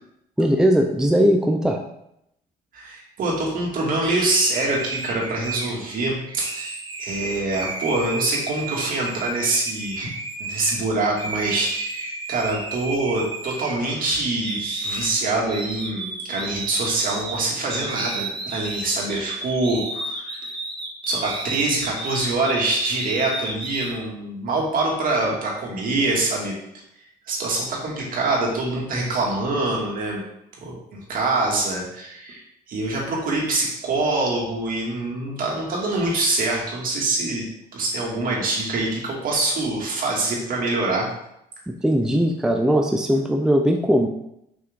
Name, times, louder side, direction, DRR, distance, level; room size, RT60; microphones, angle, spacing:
voice 1, 0.4-1.8 41.7-44.1, equal, 5° right, 3 dB, 0.6 m, -19 dB
voice 2, 2.7-10.1 10.4-20.5 21.1-26.6 27.0-30.2 30.6-37.5 37.7-41.1, right 2 dB, 55° right, -2 dB, 2.3 m, -25 dB
sound 1, 4.0-10.8 11.2-14.1 14.4-23.9, right 2 dB, 30° right, 1.2 m, -32 dB
6.2 x 5.6 x 3.7 m, 0.79 s
cardioid pair, 110°, 17 cm